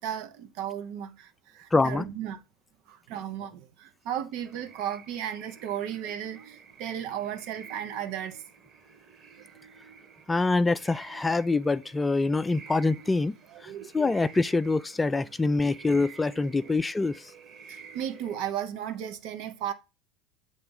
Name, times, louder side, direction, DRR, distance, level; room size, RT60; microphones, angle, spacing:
voice 1, 0.0-2.4 2.9-8.4 13.5-13.9 17.7-19.7, right 10 dB, 60° right, 0.9 m, -35 dB
voice 2, 1.7-2.0 10.3-13.3 13.6-17.3, left 3 dB, 15° left, 0.3 m, -25 dB
sound 1, 4.4-18.5, right 6 dB, 40° right, 1.7 m, -50 dB
7.8 x 3.3 x 5.4 m
hypercardioid pair, 80°, 0 cm